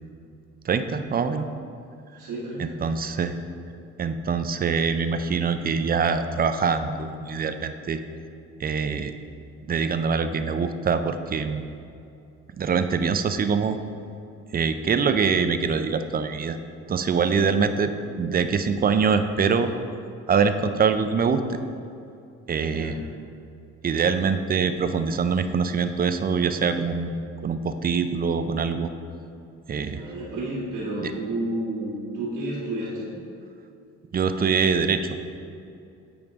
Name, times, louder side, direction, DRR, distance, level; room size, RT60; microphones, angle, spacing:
voice 1, 0.6-1.5 2.6-3.3 4.0-8.0 8.6-9.1 9.6-11.6 12.6-13.8 14.5-16.6 16.9-17.9 18.2-19.7 20.3-21.4 22.5-23.0 23.8-27.1 27.4-28.9 29.7-30.0 31.0-31.1 34.1-35.0, right 5 dB, 30° right, 9 dB, 0.4 m, -24 dB
voice 2, 2.2-2.8 22.7-22.9 29.9-33.1, right 1 dB, 75° right, -9 dB, 1.6 m, -31 dB
8.6 x 5.1 x 3.6 m, 2.6 s
cardioid pair, 90°, 30 cm